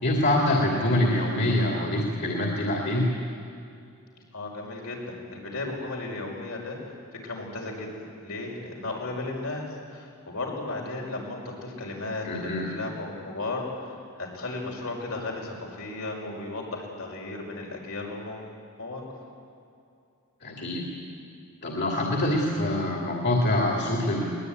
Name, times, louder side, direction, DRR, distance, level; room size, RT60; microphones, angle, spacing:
voice 1, 0.0-3.0 12.2-12.7 20.4-20.9 21.6-24.2, left 1 dB, 50° left, -1 dB, 2.9 m, -25 dB
voice 2, 4.3-6.8 7.2-18.5 18.8-19.0, left 2 dB, 80° left, -1 dB, 5.8 m, -35 dB
22.0 x 20.0 x 9.6 m, 2.5 s
head